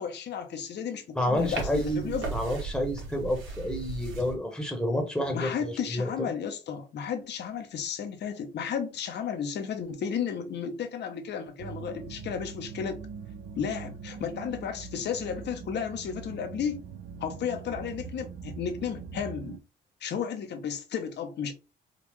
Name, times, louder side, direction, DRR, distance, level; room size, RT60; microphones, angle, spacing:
voice 1, 0.0-2.3 5.3-13.0 13.6-16.8 17.2-19.6 20.0-21.5, left 7 dB, 60° left, 0.7 m, -33 dB
voice 2, 1.1-6.3, equal, 5° left, 1.0 m, -30 dB
sound 1, 1.3-4.3, right 4 dB, 90° right, 1.4 m, -36 dB
sound 2, 11.6-19.6, right 6 dB, 65° right, 0.5 m, -42 dB
3.6 x 2.4 x 3.0 m
cardioid pair, 90°, 20 cm